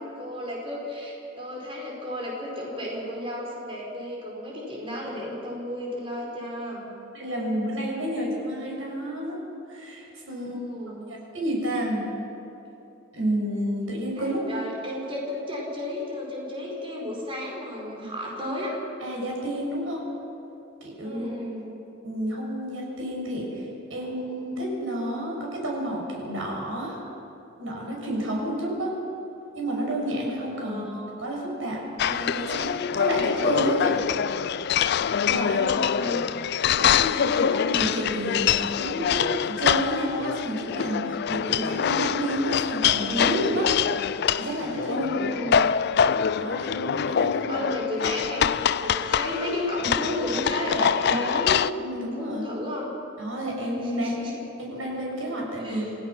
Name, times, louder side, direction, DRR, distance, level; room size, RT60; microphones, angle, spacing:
voice 1, 0.2-6.9 10.3-11.1 14.2-18.7 21.0-21.7 30.5-31.1 35.5-36.3 44.9-45.7 47.5-51.7 52.0-52.9 53.8-54.4 55.6-55.9, left 1 dB, 25° right, -2 dB, 4.7 m, -33 dB
voice 2, 7.1-10.6 11.3-12.0 13.1-14.4 19.0-20.0 20.8-21.3 22.0-27.0 27.6-29.0 29.6-30.8 31.2-31.8 32.1-34.0 35.2-35.6 36.6-43.7 44.4-45.1 46.4-47.5 48.8-48.9 51.8-52.4 53.2-54.2 54.6-55.8, right 1 dB, 80° right, -2 dB, 6.5 m, -30 dB
sound 1, 32.0-51.7, left 8 dB, 55° left, 0.4 m, -25 dB
27.5 x 16.5 x 6.1 m, 2.8 s
head